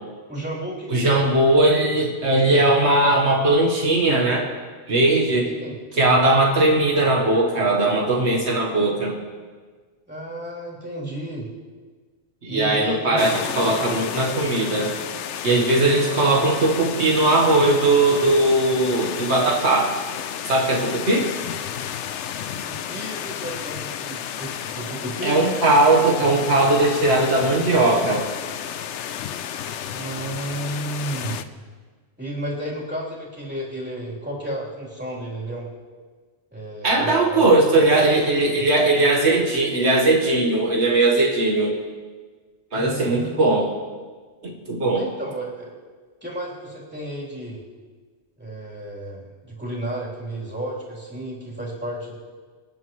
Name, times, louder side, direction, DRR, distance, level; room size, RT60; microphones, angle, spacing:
voice 1, 0.3-1.2 5.6-5.7 10.1-11.5 12.5-13.4 15.7-16.4 22.5-25.4 29.9-31.4 32.2-35.7 36.5-37.6 37.9-38.6 42.7-43.6 44.9-45.7 46.2-47.6 48.4-52.2, right 1 dB, 10° right, -6 dB, 3.4 m, -32 dB
voice 2, 0.9-4.5 4.9-5.5 5.9-9.2 12.4-14.9 15.4-19.9 20.4-21.3 25.2-28.2 36.8-41.8 42.7-43.7 44.4-45.0, right 2 dB, 75° right, -1 dB, 1.7 m, -19 dB
sound 1, 13.2-31.4, left 9 dB, 85° left, 0.9 m, -32 dB
26.0 x 9.3 x 3.2 m, 1.5 s
omnidirectional pair, 1.2 m